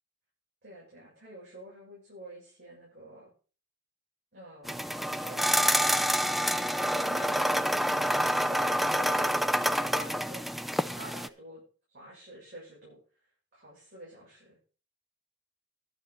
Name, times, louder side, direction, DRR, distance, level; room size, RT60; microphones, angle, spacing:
voice 1, 0.6-3.3 4.3-5.8 6.1-10.7 11.0-11.6 11.9-13.0 13.5-14.6, right 1 dB, 60° right, -6 dB, 7.5 m, -48 dB
sound 1, 4.7-11.3, equal, ahead, 0.5 m, -27 dB
12.0 x 7.4 x 5.5 m, 0.38 s
head